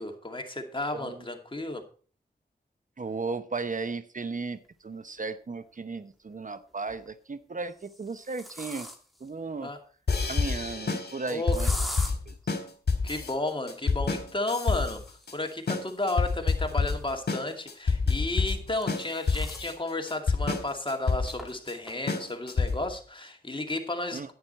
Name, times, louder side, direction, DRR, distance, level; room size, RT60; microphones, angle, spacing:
voice 1, 0.0-1.8 9.6-9.8 11.3-11.6 13.0-24.3, left 2 dB, 30° left, 4 dB, 2.4 m, -33 dB
voice 2, 3.0-4.6 4.8-8.9 9.2-9.7 10.3-11.7 12.3-12.4 24.1-24.3, right 4 dB, 50° right, 12 dB, 0.8 m, -35 dB
sound 1, 5.1-5.2 6.7-7.1 7.7-9.3 11.5-12.1 14.7-17.3 18.4-19.7 20.2-20.3 20.6-20.7 21.4-21.5 21.9-22.3, equal, ahead, 2.5 m, -42 dB
sound 2, 10.1-23.0, left 4 dB, 75° left, 1.9 m, -28 dB
10.5 x 9.6 x 4.2 m, 0.40 s
cardioid pair, 45°, 17 cm